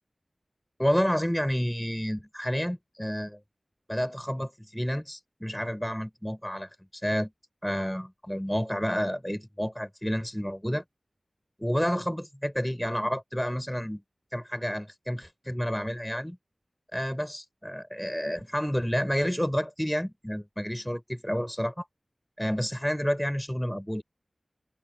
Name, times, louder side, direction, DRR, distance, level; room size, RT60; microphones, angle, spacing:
voice 1, 0.8-3.4 3.9-7.3 7.6-10.8 11.6-14.0 14.3-16.4 16.9-21.9 22.4-24.0, equal, 5° left, 5.6 m, -30 dB
cardioid pair, 40°, 0 cm